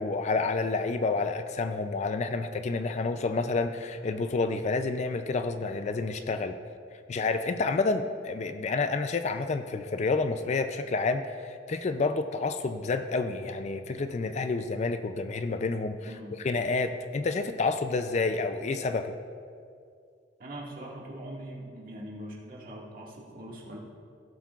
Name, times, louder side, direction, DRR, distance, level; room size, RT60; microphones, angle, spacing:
voice 1, 0.0-6.6 7.1-19.1, left 3 dB, 40° left, 9 dB, 0.4 m, -29 dB
voice 2, 16.0-16.4 20.4-23.8, right 1 dB, 50° right, -3 dB, 1.8 m, -42 dB
17.5 x 7.5 x 2.4 m, 2.3 s
head